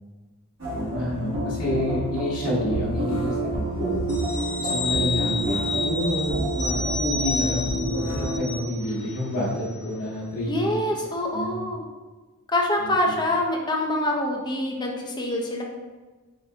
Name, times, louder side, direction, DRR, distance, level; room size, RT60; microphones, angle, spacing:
sound 1, 0.6-8.4, right 2 dB, 65° right, 1.4 m, -28 dB
voice 1, 0.7-3.4 3.8-4.0 4.5-10.7 11.3-11.5 12.8-13.0, left 1 dB, 80° left, -8 dB, 1.0 m, -28 dB
sound 2, 4.1-9.2 9.5-9.7, left 3 dB, 40° left, 1.2 m, -30 dB
voice 2, 10.5-11.8 12.5-15.6, left 1 dB, 20° left, 0 dB, 0.5 m, -25 dB
4.9 x 2.6 x 3.3 m, 1.3 s
head